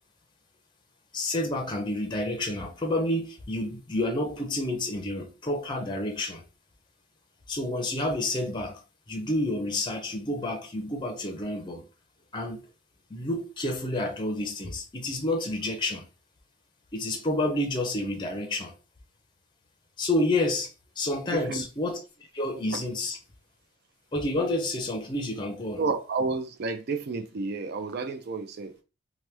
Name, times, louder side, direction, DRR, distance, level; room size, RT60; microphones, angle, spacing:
voice 1, 1.1-6.4 7.5-8.8 9.1-11.8 12.3-12.6 13.1-16.1 16.9-18.7 20.0-20.7 21.0-22.0 22.3-23.2 24.1-25.8, left 1 dB, 25° left, 0.5 m, -29 dB
voice 2, 21.3-21.6 25.8-28.8, right 4 dB, 55° right, 0.4 m, -31 dB
2.9 x 2.1 x 3.2 m
head